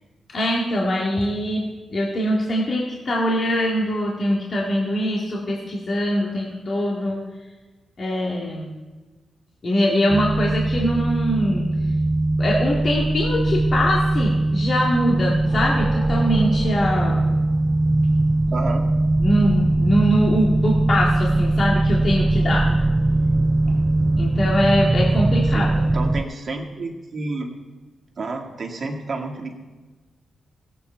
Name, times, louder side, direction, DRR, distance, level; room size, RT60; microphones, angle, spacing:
voice 1, 0.3-7.2 8.0-8.7 9.6-11.6 12.4-17.3 19.2-22.7 24.2-25.9, equal, 50° left, -3 dB, 2.0 m, -23 dB
sound 1, 10.1-26.2, right 2 dB, 20° right, 0.3 m, -21 dB
voice 2, 18.5-18.9 25.5-27.5 28.2-29.5, right 3 dB, 50° right, 2 dB, 1.9 m, -30 dB
17.0 x 8.4 x 4.6 m, 1.2 s
cardioid pair, 85°, 0 cm